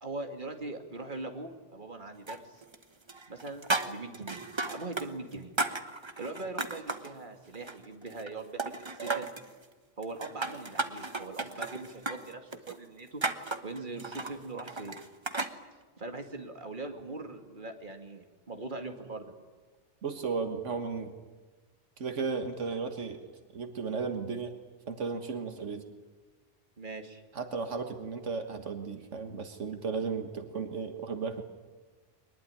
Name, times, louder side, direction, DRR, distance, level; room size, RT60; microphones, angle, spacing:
voice 1, 0.0-2.6 3.3-4.4 4.7-5.5 6.2-9.3 10.0-13.2 13.6-15.0 16.0-19.3 26.8-27.2, right 2 dB, 40° right, 5 dB, 2.5 m, -41 dB
sound 1, 2.3-2.8 3.1-5.1 5.3-7.1 7.5-8.3 8.6-9.5 10.0-15.6, right 3 dB, 25° right, 1.2 m, -35 dB
voice 2, 20.0-21.1 22.0-23.3 23.5-24.5 24.9-25.9 27.3-31.4, right 5 dB, 80° right, 7 dB, 1.8 m, -34 dB
23.0 x 20.5 x 9.9 m, 1.4 s
omnidirectional pair, 1.2 m